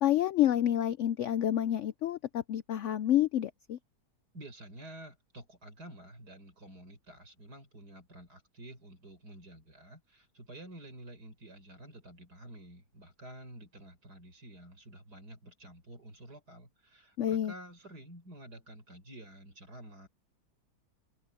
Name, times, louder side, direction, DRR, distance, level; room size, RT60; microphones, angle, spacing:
voice 1, 0.0-3.8 17.2-17.5, left 11 dB, 75° left, 0.7 m, -28 dB
voice 2, 4.3-20.1, right 1 dB, 70° right, 6.1 m, -50 dB
open air
omnidirectional pair, 1.8 m